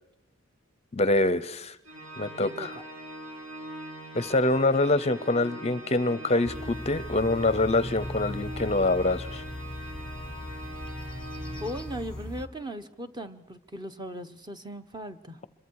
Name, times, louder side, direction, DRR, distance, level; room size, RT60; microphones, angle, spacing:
voice 1, 0.9-1.8 2.2-2.8 4.1-9.4, left 2 dB, 30° left, 15 dB, 0.7 m, -25 dB
Organ, 1.8-12.5, right 1 dB, 85° right, 5.2 m, -42 dB
voice 2, 2.4-2.8 11.6-15.4, equal, 20° right, 9 dB, 1.1 m, -38 dB
sound 1, 6.4-12.5, left 1 dB, 5° left, 1.3 m, -38 dB
26.0 x 22.5 x 4.7 m, 0.89 s
head